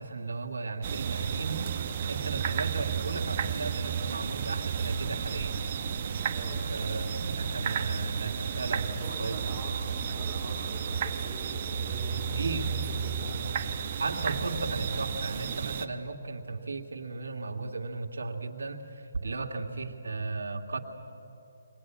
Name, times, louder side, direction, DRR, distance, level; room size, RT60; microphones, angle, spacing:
voice 1, 0.0-1.6 2.1-5.5 6.7-7.0 7.3-9.4 12.3-12.7 14.0-20.8, right 3 dB, 80° right, 3 dB, 2.2 m, -35 dB
sound 1, 0.8-15.9, right 7 dB, 35° right, 0.9 m, -32 dB
voice 2, 6.3-6.6 8.7-13.5, right 1 dB, 5° left, -8 dB, 4.1 m, -44 dB
22.5 x 19.5 x 9.5 m, 2.9 s
hypercardioid pair, 165°, 0 cm